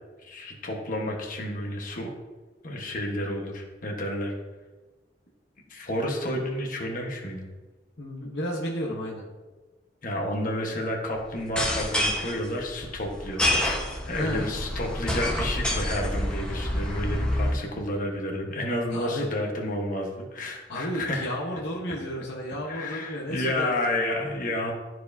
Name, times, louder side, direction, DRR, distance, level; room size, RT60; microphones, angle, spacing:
voice 1, 0.2-2.1 2.6-4.3 5.7-7.5 10.0-21.3 22.7-24.7, left 1 dB, 50° left, 1 dB, 1.2 m, -31 dB
voice 2, 8.0-9.3 14.2-14.5 18.9-19.3 20.7-24.1, equal, 65° left, -2 dB, 1.0 m, -32 dB
sound 1, 11.4-17.5, left 1 dB, 5° left, 1.1 m, -28 dB
12.5 x 4.7 x 2.7 m, 1.3 s
head